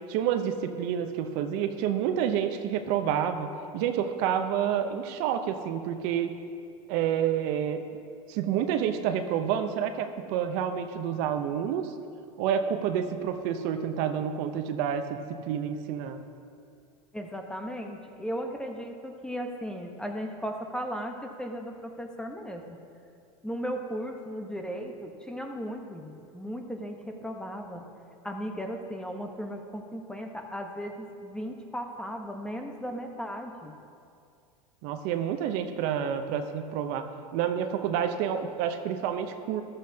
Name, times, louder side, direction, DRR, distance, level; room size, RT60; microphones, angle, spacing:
voice 1, 0.1-3.5 3.7-6.3 6.9-7.8 8.3-11.9 12.4-15.2 15.5-16.2 34.8-39.6, right 9 dB, 55° right, 7 dB, 0.8 m, -29 dB
voice 2, 17.1-22.8 23.4-27.9 28.2-33.7, equal, 5° left, 3 dB, 1.0 m, -36 dB
14.5 x 12.0 x 2.8 m, 2.4 s
hypercardioid pair, 110°, 18 cm